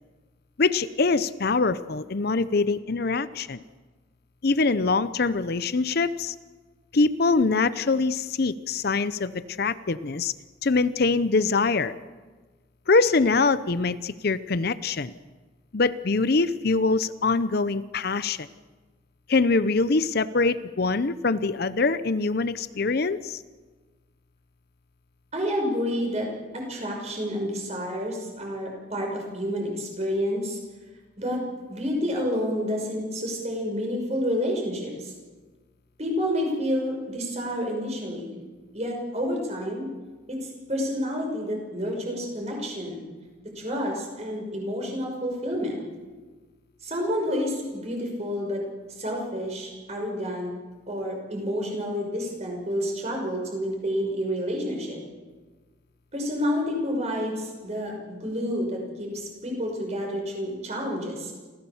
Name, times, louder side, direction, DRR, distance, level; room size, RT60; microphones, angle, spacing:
voice 1, 0.6-3.6 4.4-6.3 6.9-9.3 9.6-10.3 10.6-11.9 12.9-15.1 15.7-18.5 19.3-23.4, left 3 dB, 50° left, 14 dB, 0.6 m, -24 dB
voice 2, 25.3-26.3 26.5-30.6 31.2-35.1 36.0-38.3 38.7-39.9 40.3-43.0 43.6-45.8 46.8-48.6 48.9-50.5 50.9-55.0 56.1-61.3, equal, 35° right, 1 dB, 5.9 m, -29 dB
28.0 x 15.5 x 7.2 m, 1.4 s
head